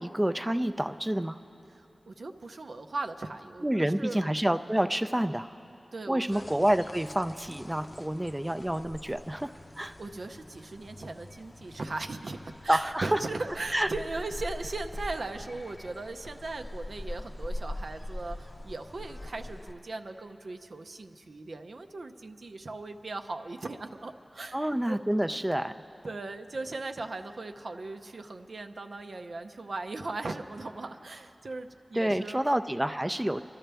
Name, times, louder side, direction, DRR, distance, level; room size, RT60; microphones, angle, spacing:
voice 1, 0.0-1.4 3.6-5.6 6.1-9.9 12.7-13.2 13.7-13.9 24.5-25.7 31.9-33.4, right 1 dB, 15° right, 9 dB, 0.4 m, -28 dB
voice 2, 1.7-4.2 5.9-6.4 10.0-25.0 26.0-32.5, right 3 dB, 80° right, 6 dB, 0.5 m, -38 dB
sound 1, 6.3-19.7, left 1 dB, 40° left, 0.6 m, -43 dB
25.0 x 12.0 x 3.4 m, 2.8 s
wide cardioid pair, 55°, 0 cm